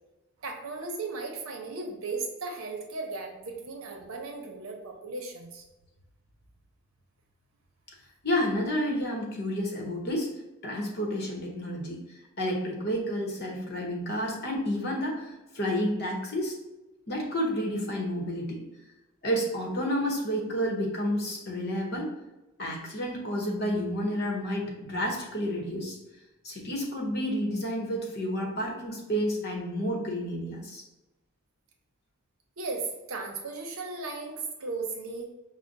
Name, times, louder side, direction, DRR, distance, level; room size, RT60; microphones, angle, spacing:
voice 1, 0.4-5.6 32.6-35.3, right 3 dB, 75° right, 2 dB, 0.8 m, -36 dB
voice 2, 8.2-10.3 10.6-12.0 12.4-16.6 17.1-18.6 19.2-22.1 22.6-26.0 26.4-30.8, equal, 50° left, 0 dB, 0.8 m, -30 dB
6.3 x 2.1 x 2.6 m, 1.0 s
head